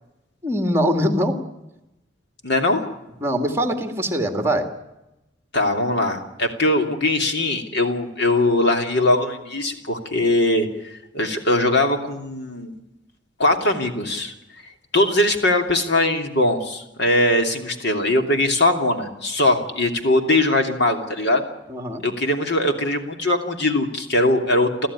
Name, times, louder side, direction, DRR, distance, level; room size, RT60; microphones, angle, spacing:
voice 1, 0.4-1.4 3.2-4.7 21.7-22.0, equal, 15° right, 6 dB, 2.1 m, -22 dB
voice 2, 2.4-2.9 5.5-12.7 13.4-14.3 14.9-21.4 22.0-24.9, left 1 dB, 60° left, 5 dB, 2.9 m, -21 dB
29.0 x 14.0 x 9.8 m, 0.94 s
head